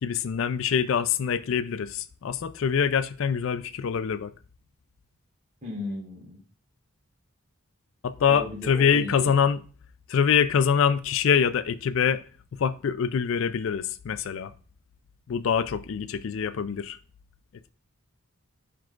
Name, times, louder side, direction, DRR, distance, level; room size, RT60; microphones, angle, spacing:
voice 1, 0.0-4.3 8.0-9.6 10.1-12.2 12.5-14.5 15.3-17.0, left 7 dB, 65° left, 0.4 m, -24 dB
voice 2, 5.6-6.4 8.3-9.3, left 1 dB, 35° right, 3.5 m, -36 dB
10.5 x 4.7 x 2.4 m
head